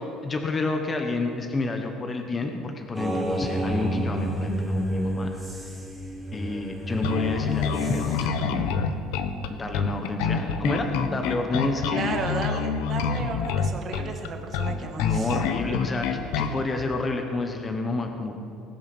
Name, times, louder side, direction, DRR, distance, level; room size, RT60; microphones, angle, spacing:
voice 1, 0.2-5.3 5.6-5.7 6.3-8.7 9.5-12.0 15.0-18.3, left 2 dB, 20° left, 4 dB, 1.0 m, -29 dB
sound 1, 2.9-8.3, right 1 dB, ahead, 2.3 m, -30 dB
Bass guitar, 7.0-16.6, left 6 dB, 90° left, 1.0 m, -27 dB
voice 2, 11.9-15.4, right 4 dB, 35° right, 4 dB, 1.6 m, -33 dB
20.0 x 7.4 x 6.1 m, 2.8 s
cardioid pair, 155°, 0 cm